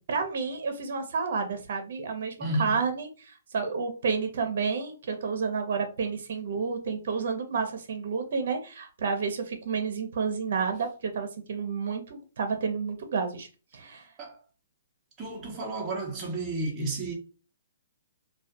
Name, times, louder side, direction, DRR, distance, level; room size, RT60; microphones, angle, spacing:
voice 1, 0.1-13.5 13.7-14.0, right 5 dB, 60° right, 0.6 m, -30 dB
voice 2, 2.4-2.8 14.2-14.3 15.2-17.1, right 2 dB, 15° right, 0.6 m, -31 dB
2.3 x 2.2 x 2.7 m
hypercardioid pair, 160°, 0 cm